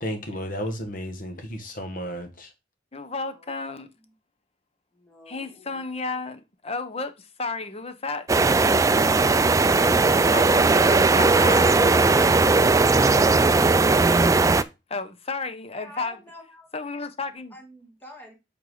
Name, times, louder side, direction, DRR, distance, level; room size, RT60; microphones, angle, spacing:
voice 1, 0.0-2.5, equal, 50° left, 1.7 m, -33 dB
voice 2, 2.9-3.9 5.3-8.3 10.3-11.7 14.9-16.2 16.7-17.6, left 3 dB, 35° left, 0.9 m, -32 dB
voice 3, 4.9-5.8 15.7-17.1 17.5-18.3, equal, 10° left, 2.4 m, -48 dB
sound 1, 8.3-14.6, right 3 dB, 20° right, 0.3 m, -18 dB
8.0 x 4.7 x 3.9 m
head